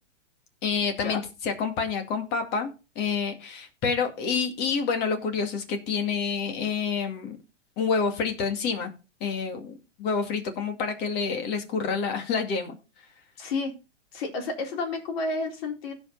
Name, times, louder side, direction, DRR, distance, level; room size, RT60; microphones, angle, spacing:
voice 1, 0.6-2.7 3.0-7.4 7.8-8.9 9.2-12.8, left 5 dB, 25° left, 6 dB, 2.3 m, -28 dB
voice 2, 13.4-13.7 14.1-15.9, left 3 dB, 50° left, 2 dB, 4.2 m, -30 dB
16.5 x 5.6 x 4.0 m, 0.30 s
hypercardioid pair, 160°, 37 cm